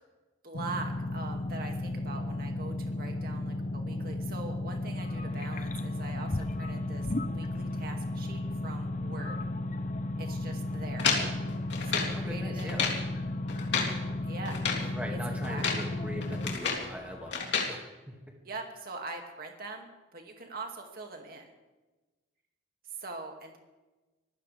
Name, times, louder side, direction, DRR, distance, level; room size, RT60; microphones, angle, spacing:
voice 1, 0.4-9.5 10.2-11.1 11.8-12.7 14.2-15.2 15.5-15.6 18.4-21.5 22.9-23.6, right 3 dB, 50° right, 2 dB, 2.3 m, -43 dB
sound 1, 0.5-16.5, left 2 dB, 80° left, 1.5 m, -34 dB
sound 2, 5.0-17.3, left 2 dB, 40° left, 0.8 m, -43 dB
sound 3, 11.0-12.2 12.6-13.0 13.5-14.0 14.5-14.9 15.4-15.9 16.2-16.9 17.3-17.7, left 5 dB, 65° left, 3.0 m, -30 dB
voice 2, 12.1-12.9 14.9-18.2, equal, 5° right, 1 dB, 2.2 m, -41 dB
25.0 x 15.5 x 3.5 m, 1.2 s
head